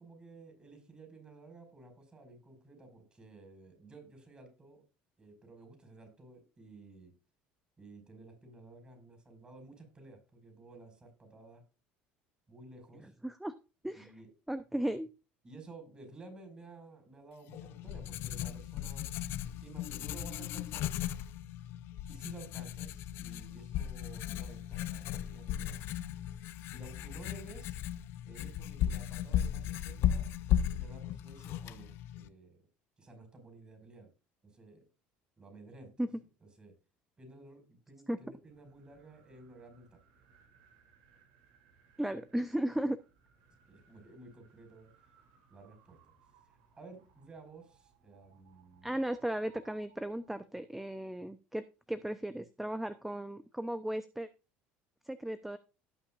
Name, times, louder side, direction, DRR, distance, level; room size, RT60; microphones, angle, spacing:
voice 1, 0.0-4.8 5.2-7.1 7.8-11.6 12.5-13.1 13.9-14.3 15.4-19.1 19.6-20.9 22.1-25.8 26.7-27.8 28.3-30.3 30.6-32.6 33.0-34.1 34.4-34.9 35.4-35.9 36.4-36.7 37.2-40.0 43.7-44.9 45.5-46.0 46.7-49.0, right 3 dB, 20° right, 5 dB, 5.4 m, -53 dB
voice 2, 13.2-13.5 13.8-14.1 14.5-15.1 36.0-36.1 38.1-38.2 42.0-43.0 48.8-54.3 55.1-55.6, right 1 dB, 5° right, 12 dB, 0.6 m, -35 dB
Writing, 17.5-32.3, left 11 dB, 65° left, 0.7 m, -36 dB
sound 1, 38.4-50.4, right 6 dB, 80° right, 2.8 m, -66 dB
17.5 x 5.9 x 2.5 m, 0.31 s
supercardioid pair, 110°, 4 cm